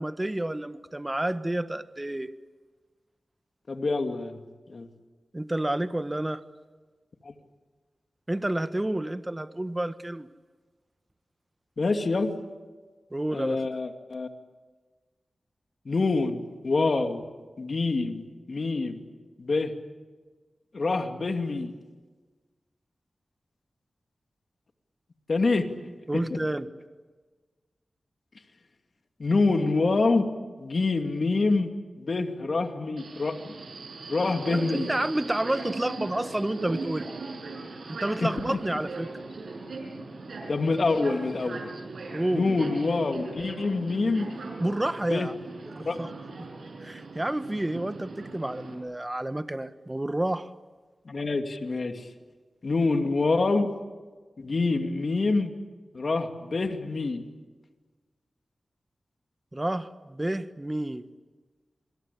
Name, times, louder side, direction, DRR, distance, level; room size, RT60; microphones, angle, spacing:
voice 1, 0.0-2.3 5.3-6.4 8.3-10.3 13.1-13.6 26.1-26.7 34.5-37.1 37.9-39.1 42.1-42.5 44.6-45.3 45.7-46.1 46.4-46.5 46.8-50.5 59.5-61.1, right 1 dB, 20° right, 11 dB, 1.5 m, -30 dB
voice 2, 3.7-4.4 4.7-4.9 7.2-7.3 11.8-12.3 13.3-14.3 15.9-17.3 17.6-19.0 19.4-19.7 20.7-21.7 25.3-25.7 29.2-30.3 30.6-31.7 32.0-33.5 34.1-34.9 38.2-38.6 40.5-41.6 42.3-44.3 45.1-45.3 45.8-46.0 51.1-52.1 52.6-53.7 54.4-55.5 55.9-57.2, left 3 dB, 65° left, 6 dB, 2.6 m, -26 dB
Subway metro underground, 33.0-48.7, right 3 dB, 80° right, 6.0 m, -39 dB
27.5 x 23.0 x 8.6 m, 1.4 s
cardioid pair, 45°, 0 cm